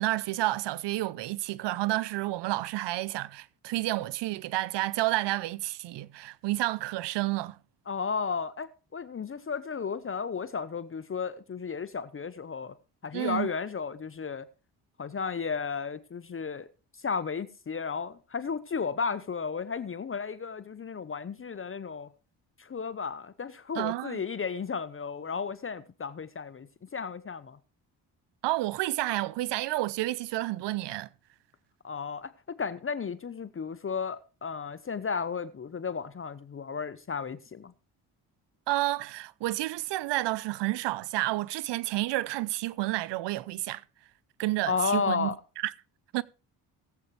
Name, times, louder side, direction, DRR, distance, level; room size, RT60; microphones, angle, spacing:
voice 1, 0.0-7.6 13.1-13.5 23.8-24.2 28.4-31.1 38.7-43.8 44.4-45.3 45.6-45.7 46.1-46.2, right 17 dB, 75° right, 0.6 m, -30 dB
voice 2, 7.9-12.7 13.0-14.4 15.0-16.7 17.0-22.1 22.6-27.6 31.8-37.7 44.7-45.4, left 5 dB, 30° left, 0.8 m, -33 dB
19.5 x 7.8 x 3.1 m
cardioid pair, 75°, 43 cm